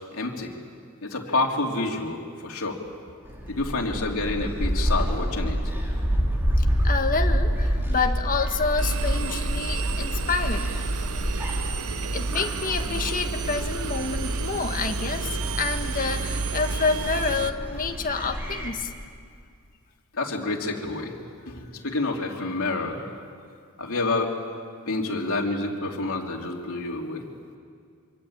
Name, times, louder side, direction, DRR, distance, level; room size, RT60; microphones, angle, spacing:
voice 1, 0.1-0.5 1.0-2.8 3.5-5.6 20.1-21.1 21.4-23.1 23.8-24.3 24.9-27.2, left 2 dB, 65° left, 0 dB, 3.3 m, -28 dB
Gull seagull, 3.2-18.7, equal, 10° right, 4.1 m, -28 dB
voice 2, 6.8-10.7 11.5-11.6 12.1-18.9, left 4 dB, 40° left, 4 dB, 1.7 m, -28 dB
Engine, 8.8-17.5, right 3 dB, 75° right, 1.1 m, -30 dB
26.0 x 24.0 x 8.8 m, 2.2 s
head